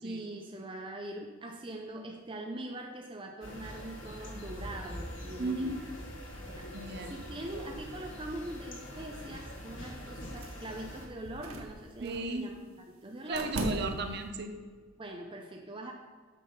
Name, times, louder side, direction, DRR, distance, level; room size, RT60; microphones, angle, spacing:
voice 1, 0.0-5.7 6.5-12.6 12.9-13.5 15.0-15.9, right 1 dB, 25° right, 2 dB, 0.6 m, -42 dB
sound 1, 3.4-11.1, left 1 dB, 60° left, 1.6 m, -44 dB
voice 2, 5.4-5.8 6.7-7.2 12.0-12.5 13.3-14.5, right 2 dB, 50° right, 6 dB, 0.9 m, -35 dB
sound 2, 10.4-10.8 11.2-12.3 13.3-14.3, right 1 dB, 85° right, 1.1 m, -38 dB
8.3 x 6.2 x 5.5 m, 1.5 s
head